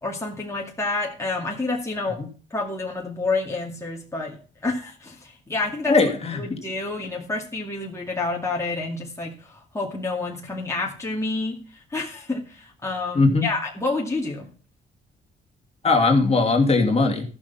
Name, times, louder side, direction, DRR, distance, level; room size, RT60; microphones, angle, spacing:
voice 1, 0.0-2.2 2.5-4.4 4.6-6.0 6.3-14.5, left 3 dB, 15° left, -2 dB, 2.3 m, -29 dB
voice 2, 5.9-6.6 13.1-13.5 15.8-17.2, left 3 dB, 30° left, 1 dB, 2.7 m, -19 dB
14.0 x 6.3 x 5.9 m, 0.39 s
cardioid pair, 90°, 20 cm